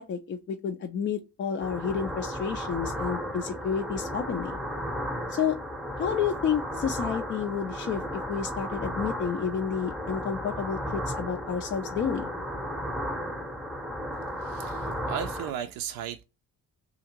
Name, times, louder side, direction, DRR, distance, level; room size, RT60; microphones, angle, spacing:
voice 1, 0.0-4.6 5.3-5.6 6.0-12.3, left 7 dB, 30° left, 0.4 m, -30 dB
sound 1, 1.6-15.5, equal, ahead, 0.8 m, -34 dB
voice 2, 14.4-16.2, right 10 dB, 55° right, 0.5 m, -35 dB
2.7 x 2.4 x 2.8 m
figure-of-eight pair, 40°, 44 cm